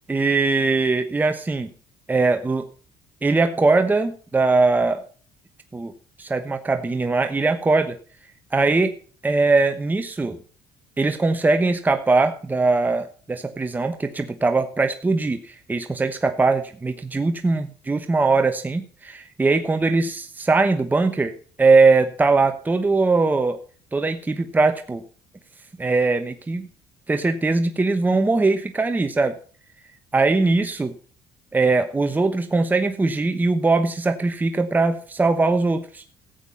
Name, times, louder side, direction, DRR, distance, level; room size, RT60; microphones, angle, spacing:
voice 1, 0.1-1.7 2.1-2.6 3.2-5.0 5.7-5.9 6.2-8.0 8.5-9.0 9.2-10.4 11.0-21.3 21.6-23.6 23.9-25.0 25.8-26.7 27.1-29.4 30.1-30.9 31.5-36.0, right 3 dB, 15° right, 8 dB, 1.0 m, -21 dB
14.0 x 8.2 x 5.6 m, 0.44 s
cardioid pair, 105°, 11 cm